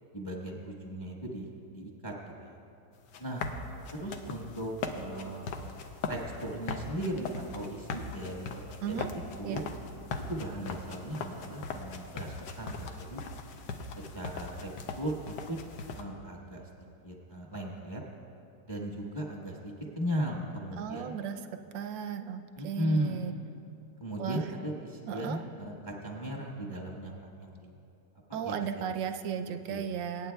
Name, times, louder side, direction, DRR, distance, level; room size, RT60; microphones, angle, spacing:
voice 1, 0.1-2.5 3.2-3.4 3.9-5.4 6.1-8.6 8.9-9.1 9.4-9.6 10.3-13.2 14.1-14.7 15.0-15.6 15.9-16.6 17.0-18.0 18.7-21.2 22.6-23.2 24.0-27.1 27.4-27.7 28.3-28.8 29.7-29.9, right 1 dB, 15° left, -1 dB, 0.9 m, -37 dB
sound 1, 2.9-16.0, left 4 dB, 75° left, 1.3 m, -39 dB
voice 2, 20.8-21.4 21.7-23.3 24.2-24.4 25.1-25.4 28.3-30.3, right 8 dB, 85° right, 7 dB, 1.3 m, -35 dB
24.5 x 9.2 x 2.3 m, 2.6 s
omnidirectional pair, 2.0 m